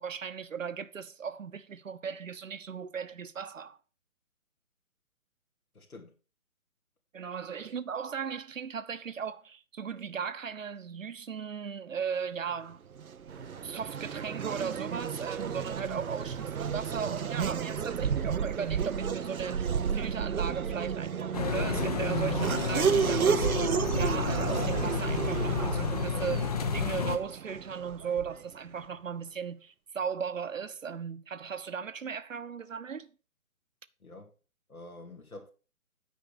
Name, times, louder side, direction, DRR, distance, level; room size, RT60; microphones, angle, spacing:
voice 1, 0.0-3.8 7.1-12.8 13.6-33.1, right 6 dB, 65° right, 1.0 m, -37 dB
voice 2, 5.7-6.1 34.0-34.3 34.7-35.5, left 2 dB, 85° left, 2.5 m, -47 dB
Race car auto racing / Accelerating revving vroom, 12.9-28.5, right 7 dB, 80° right, 0.7 m, -32 dB
sound 1, 13.3-20.2, right 6 dB, 50° right, 1.2 m, -49 dB
sound 2, 21.3-27.2, left 6 dB, 30° left, 0.8 m, -31 dB
9.2 x 5.5 x 6.7 m
figure-of-eight pair, 140°, 42 cm